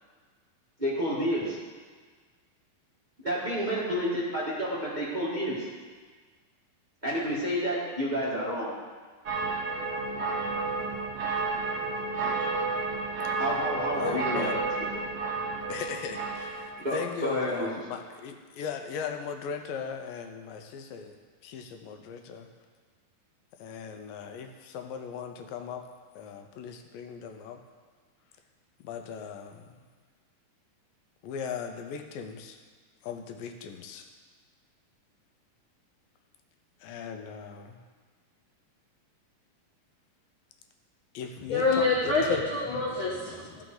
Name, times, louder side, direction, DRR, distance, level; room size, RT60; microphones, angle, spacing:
voice 1, 0.8-1.6 3.2-5.6 7.0-8.7 13.4-14.5 14.9-15.0 16.8-17.7, equal, 20° right, -8 dB, 1.3 m, -29 dB
sound 1, 9.3-16.9, right 3 dB, 70° right, 1.2 m, -31 dB
voice 2, 14.0-14.6 15.7-21.2 21.4-22.5 23.6-25.8 26.2-27.6 28.8-29.7 31.2-32.6 33.0-34.1 36.8-37.8 41.1-42.4, left 6 dB, 90° left, 5 dB, 2.5 m, -38 dB
voice 3, 41.5-43.6, left 3 dB, 65° left, -5 dB, 1.2 m, -26 dB
14.0 x 5.9 x 3.9 m, 1.5 s
omnidirectional pair, 3.9 m